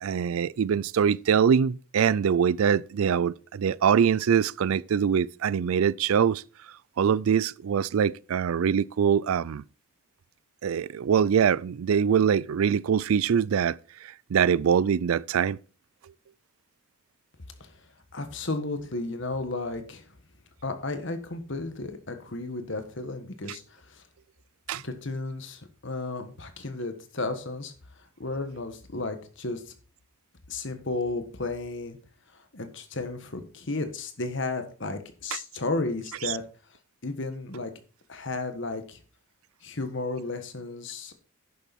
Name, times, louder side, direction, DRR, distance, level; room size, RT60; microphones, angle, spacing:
voice 1, 0.0-6.4 7.0-9.6 10.6-13.8 14.3-15.6 24.7-24.8 36.2-36.3, right 7 dB, 80° right, 0.4 m, -23 dB
voice 2, 18.1-20.0 20.6-23.6 23.9-24.0 24.7-27.7 28.2-29.6 30.5-32.0 32.5-36.4 37.0-37.7 38.1-39.0 39.6-41.1, left 2 dB, 60° left, 1.4 m, -33 dB
10.5 x 6.8 x 4.3 m
head